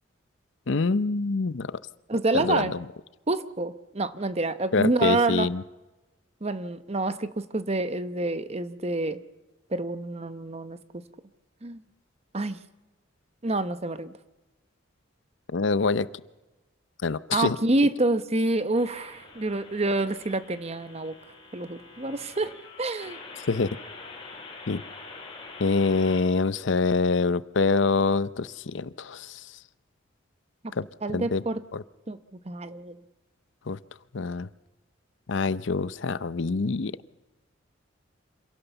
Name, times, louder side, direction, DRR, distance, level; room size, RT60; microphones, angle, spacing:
voice 1, 0.7-1.8 2.3-2.8 4.7-5.6 15.5-16.1 17.0-17.6 23.4-23.7 24.7-24.8 25.6-29.5 30.7-31.4 31.7-31.8 33.7-33.8 34.1-34.5 35.3-36.9, left 4 dB, 65° left, 16 dB, 0.6 m, -25 dB
voice 2, 2.1-2.7 3.3-5.5 6.4-9.2 9.7-10.8 11.6-11.8 12.3-12.6 13.4-14.1 17.3-21.2 21.5-22.5 22.8-23.2 31.0-31.6 32.1-32.2 32.4-33.0, right 2 dB, 30° right, 12 dB, 0.8 m, -27 dB
sound 1, 18.7-26.2, left 3 dB, 30° left, 4.9 m, -45 dB
26.5 x 17.0 x 7.0 m, 1.1 s
head